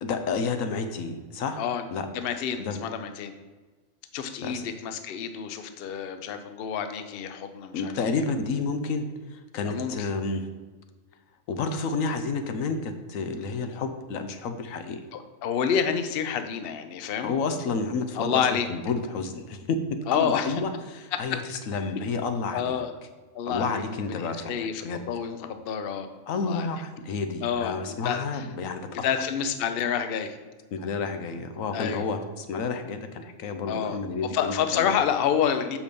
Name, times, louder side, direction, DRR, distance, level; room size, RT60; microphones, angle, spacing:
voice 1, 0.0-1.6 1.9-2.1 2.7-2.8 4.4-4.6 7.7-10.5 11.5-15.0 17.2-19.8 20.1-22.8 23.5-25.0 26.3-28.9 30.7-34.9, left 4 dB, 80° left, 8 dB, 1.1 m, -30 dB
voice 2, 1.6-1.9 2.1-3.3 4.1-7.9 8.2-8.3 9.6-10.1 15.1-17.3 18.1-18.7 20.1-20.5 21.1-21.4 22.5-22.9 23.3-26.7 27.4-28.5 28.9-30.4 31.7-32.0 33.7-34.0 34.3-35.8, left 8 dB, 55° left, 8 dB, 0.7 m, -29 dB
6.6 x 5.1 x 5.2 m, 1.3 s
omnidirectional pair, 1.4 m